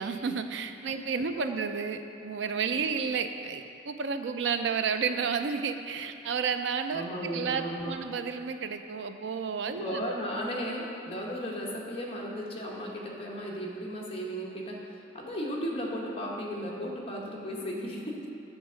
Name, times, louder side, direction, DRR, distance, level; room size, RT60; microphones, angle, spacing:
voice 1, 0.0-10.1 10.6-10.7, right 6 dB, 80° right, 8 dB, 0.4 m, -31 dB
voice 2, 6.9-7.9 9.6-18.2, equal, 30° left, -3 dB, 1.0 m, -35 dB
8.2 x 3.5 x 6.2 m, 2.9 s
head